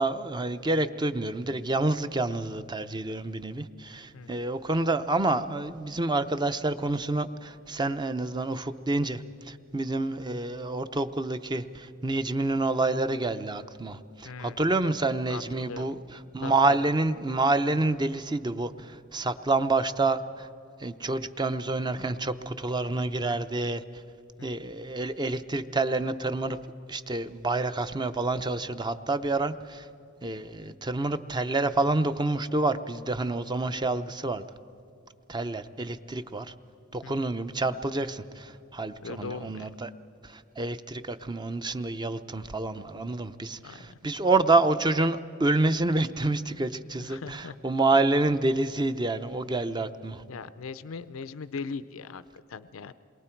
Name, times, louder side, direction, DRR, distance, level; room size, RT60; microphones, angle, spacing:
voice 1, 0.0-20.5 20.8-23.8 24.4-26.6 26.9-29.9 30.2-34.4 35.3-36.5 36.9-39.9 40.2-50.2, right 2 dB, 20° right, 10 dB, 0.6 m, -28 dB
voice 2, 14.2-14.6 15.3-16.0 16.4-16.9 24.4-24.5 37.0-37.3 39.0-39.6 43.6-44.0 47.0-47.6 50.3-52.9, left 5 dB, 85° left, 14 dB, 0.5 m, -39 dB
28.0 x 22.5 x 4.5 m, 2.6 s
head